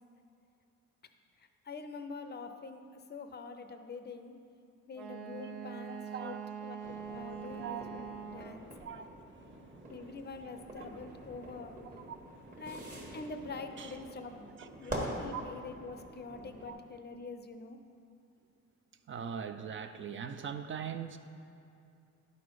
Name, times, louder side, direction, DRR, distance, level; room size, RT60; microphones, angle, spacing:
voice 1, 1.7-2.8 3.1-4.3 4.9-8.7 9.9-11.8 12.6-12.9 13.1-14.5 14.8-17.8, left 4 dB, 35° left, 8 dB, 0.5 m, -45 dB
Wind instrument woodwind instrument, 4.9-8.7, right 7 dB, 80° right, 0.6 m, -43 dB
voice 2, 5.9-6.8 7.2-8.1 8.8-10.0 10.8-10.9 11.8-12.6 13.8-14.0 14.6-14.9 15.3-15.4 16.7-16.8 19.1-21.2, right 7 dB, 40° right, 9 dB, 0.4 m, -43 dB
sound 1, 6.8-16.7, right 1 dB, 25° right, 1.4 m, -45 dB
10.5 x 4.1 x 4.7 m, 2.6 s
cardioid pair, 90°, 30 cm